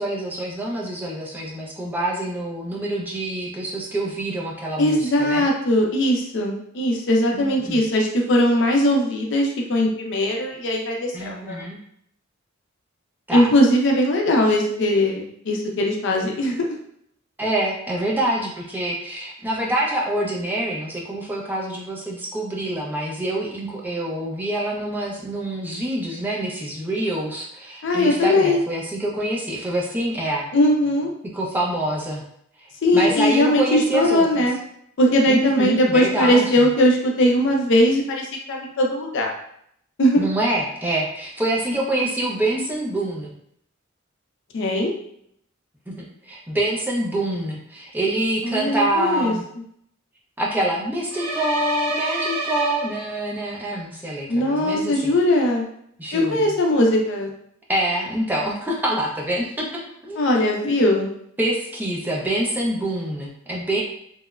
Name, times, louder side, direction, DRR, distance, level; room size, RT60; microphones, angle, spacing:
voice 1, 0.0-5.5 7.3-7.8 11.1-11.8 13.3-13.5 17.4-30.5 31.3-32.2 32.6-34.5 35.3-36.7 40.2-43.3 45.9-49.4 50.4-55.2 56.0-56.5 57.7-59.7 60.0-60.8 61.4-63.8, right 1 dB, 10° right, -3 dB, 0.4 m, -26 dB
voice 2, 4.8-11.6 13.3-16.6 27.8-28.6 30.5-31.1 32.8-34.6 35.0-39.3 40.0-40.3 44.5-44.9 48.4-49.3 54.3-55.7 56.1-57.3 60.2-61.1, left 1 dB, 60° left, 1 dB, 0.5 m, -20 dB
sound 1, 51.1-53.5, right 3 dB, 90° right, 0.6 m, -28 dB
2.9 x 2.0 x 2.3 m, 0.69 s
head